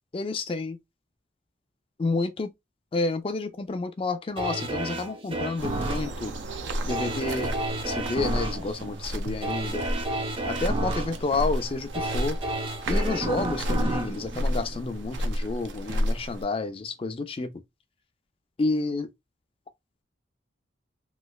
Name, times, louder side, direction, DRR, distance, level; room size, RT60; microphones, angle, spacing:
voice 1, 0.1-0.8 2.0-2.5 2.9-6.3 6.8-7.5 7.9-9.8 10.5-12.4 12.9-17.5 18.6-19.1, left 3 dB, 30° left, 0.3 m, -30 dB
sound 1, 4.4-15.3 15.8-15.9, right 2 dB, 30° right, 0.5 m, -32 dB
sound 2, 5.6-16.4, equal, 75° right, 0.5 m, -31 dB
3.1 x 3.0 x 2.3 m
head